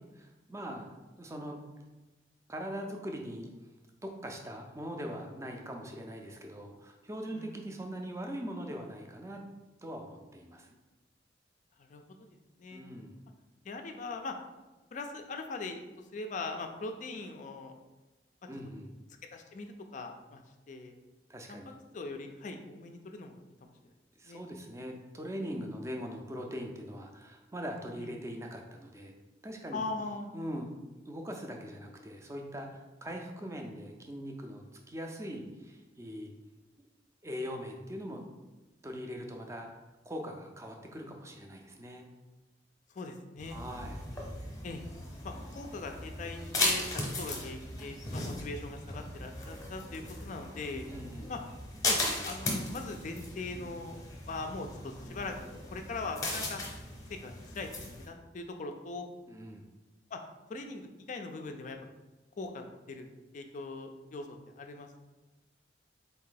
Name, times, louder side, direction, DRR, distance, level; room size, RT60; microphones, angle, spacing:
voice 1, 0.2-0.9 1.2-1.6 2.5-3.5 4.0-9.4 9.8-10.7 12.7-13.2 18.5-18.9 21.3-21.8 24.2-29.1 29.4-29.8 30.3-30.7 31.0-36.3 37.2-38.2 38.8-39.7 40.1-42.1 43.5-44.0 50.9-51.3 59.3-59.7, equal, 15° right, 2 dB, 0.4 m, -41 dB
voice 2, 7.3-7.7 11.8-12.0 12.6-12.8 13.7-14.4 14.9-15.8 16.1-17.7 19.3-20.4 20.7-20.9 21.5-21.6 21.9-23.7 24.2-24.4 28.0-28.2 29.7-30.3 42.9-43.6 44.6-44.8 45.2-46.8 47.2-50.9 51.3-51.4 51.9-52.0 52.2-55.4 55.7-56.6 57.1-59.1 60.1-60.2 60.5-61.8 62.4-65.0, left 3 dB, 45° left, 5 dB, 0.4 m, -41 dB
sound 1, 43.4-58.1, left 1 dB, 20° left, 0.8 m, -37 dB
4.0 x 2.7 x 3.8 m, 1.1 s
head